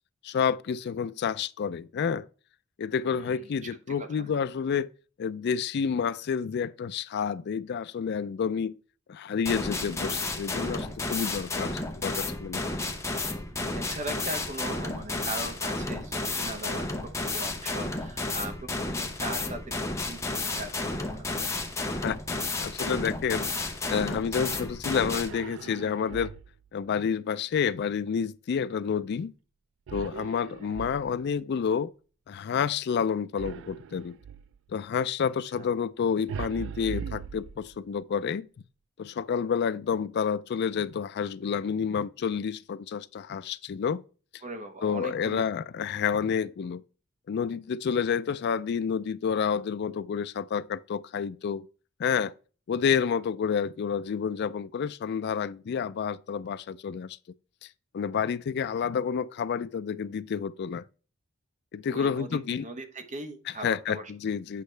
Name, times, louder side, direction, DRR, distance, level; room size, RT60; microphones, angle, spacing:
voice 1, 0.2-2.3 2.8-4.9 5.2-8.8 9.1-12.6 22.0-26.3 26.7-29.3 29.9-31.9 32.3-34.2 34.7-38.5 39.0-44.0 44.8-46.8 47.3-51.7 52.0-52.3 52.7-57.2 57.9-60.8 61.7-62.6 63.6-64.6, left 6 dB, 55° left, 0.3 m, -29 dB
voice 2, 3.2-4.3 10.6-11.3 13.2-19.8 20.1-21.5 26.1-26.3 30.6-30.7 35.6-35.7 44.4-45.4 61.9-64.1, right 2 dB, 35° right, 1.0 m, -40 dB
sound 1, 9.5-25.3, left 2 dB, 15° left, 0.9 m, -32 dB
sound 2, 25.2-26.7 29.9-31.4 33.4-34.6 36.3-38.0, right 7 dB, 60° right, 0.3 m, -40 dB
8.4 x 5.2 x 3.3 m
head